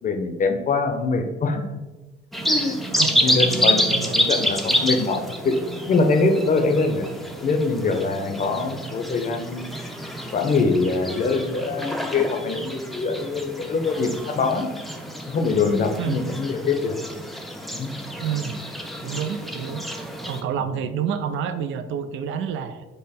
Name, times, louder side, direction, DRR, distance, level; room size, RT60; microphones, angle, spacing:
voice 1, 0.0-1.8 2.4-2.8 3.2-7.1 7.4-9.8 10.3-14.7 15.3-17.0 17.7-17.9, left 3 dB, 40° left, 5 dB, 0.6 m, -23 dB
sound 1, 2.3-20.4, equal, ahead, 0.5 m, -28 dB
voice 2, 3.0-3.4 3.9-4.3 16.0-16.2 18.2-18.6 19.0-19.8 20.3-22.9, right 8 dB, 80° right, 9 dB, 0.4 m, -28 dB
5.3 x 2.1 x 4.1 m, 1.2 s
cardioid pair, 90°, 20 cm